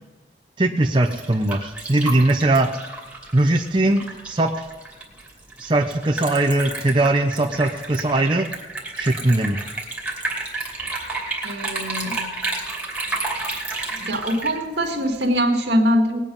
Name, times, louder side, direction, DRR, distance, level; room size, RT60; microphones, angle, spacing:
voice 1, 0.6-2.7 3.3-4.5 5.6-8.5 9.0-9.6, right 2 dB, 25° right, 2 dB, 0.7 m, -20 dB
Liquid, 0.8-15.4, right 2 dB, 5° right, 2.7 m, -31 dB
voice 2, 11.4-12.3 14.0-16.2, equal, 75° right, 3 dB, 2.0 m, -22 dB
19.5 x 8.8 x 5.4 m, 1.2 s
head